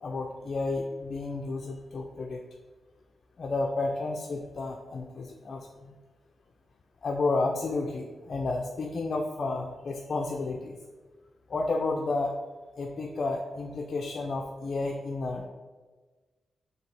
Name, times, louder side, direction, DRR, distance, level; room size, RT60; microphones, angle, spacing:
voice 1, 0.0-2.4 3.4-6.0 7.0-10.8 11.5-12.3 12.8-15.5, left 3 dB, 55° left, 2 dB, 0.4 m, -31 dB
4.7 x 3.3 x 3.3 m, 1.4 s
cardioid pair, 90°, 0 cm